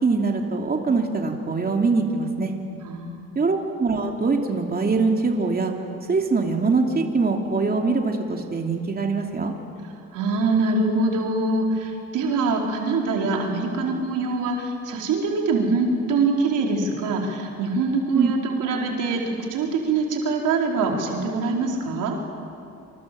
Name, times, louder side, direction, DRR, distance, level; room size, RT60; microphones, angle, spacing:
voice 1, 0.0-2.5 3.3-5.7 6.1-9.5 18.1-18.3, right 4 dB, 30° right, 2 dB, 2.9 m, -23 dB
voice 2, 2.8-3.3 10.1-22.2, right 3 dB, 85° right, 0 dB, 4.6 m, -24 dB
28.0 x 26.5 x 7.8 m, 2.6 s
cardioid pair, 90°, 30 cm